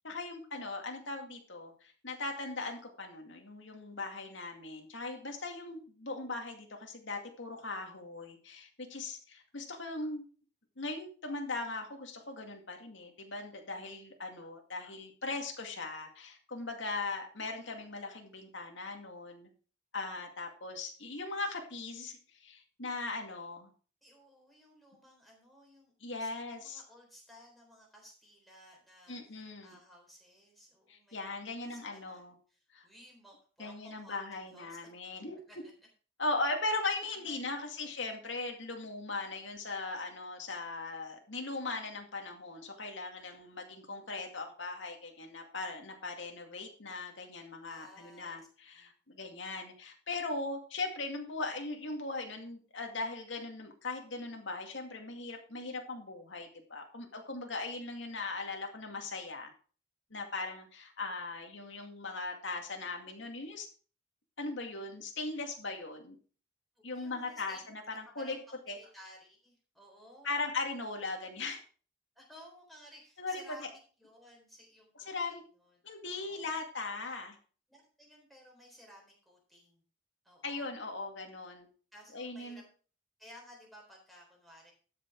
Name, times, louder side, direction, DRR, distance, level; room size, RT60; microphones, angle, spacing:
voice 1, 0.0-10.3 10.8-19.5 19.9-23.7 26.0-26.8 29.1-29.8 30.9-32.3 32.7-32.8 33.6-35.4 36.2-59.5 60.1-63.7 64.4-66.2 66.8-68.4 68.7-68.8 70.2-71.6 73.2-73.7 75.0-75.4 75.8-77.4 80.4-81.7 82.1-82.6, left 3 dB, 70° left, 3 dB, 2.2 m, -39 dB
voice 2, 24.0-25.9 26.2-34.9 35.5-35.6 37.1-37.5 37.7-38.0 47.6-48.4 48.7-48.9 66.8-67.7 68.0-70.4 72.2-75.8 76.0-76.5 77.7-79.8 80.2-80.7 81.9-82.6 83.2-84.7, equal, ahead, -1 dB, 3.9 m, -57 dB
12.5 x 6.3 x 4.6 m, 0.39 s
head